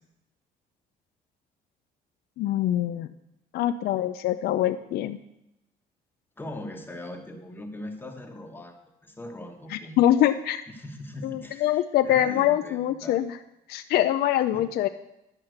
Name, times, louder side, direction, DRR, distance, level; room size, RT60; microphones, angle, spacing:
voice 1, 2.4-3.1 3.5-5.2 10.0-10.6 11.2-13.4 13.7-14.9, left 12 dB, 70° left, 9 dB, 0.5 m, -24 dB
voice 2, 6.4-10.0 10.7-13.2 14.5-14.7, left 1 dB, 10° left, 2 dB, 1.2 m, -40 dB
11.0 x 5.7 x 7.8 m, 0.87 s
cardioid pair, 110°, 17 cm